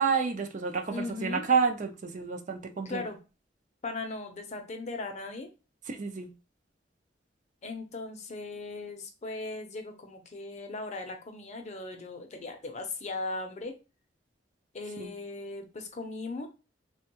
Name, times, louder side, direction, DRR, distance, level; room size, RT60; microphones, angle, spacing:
voice 1, 0.0-3.0 5.9-6.3 15.0-15.1, right 5 dB, 45° right, 0.5 m, -29 dB
voice 2, 0.9-1.4 2.8-3.2 3.8-5.5 7.6-13.7 14.7-16.5, left 3 dB, 40° left, 0.6 m, -38 dB
3.4 x 2.2 x 2.9 m
head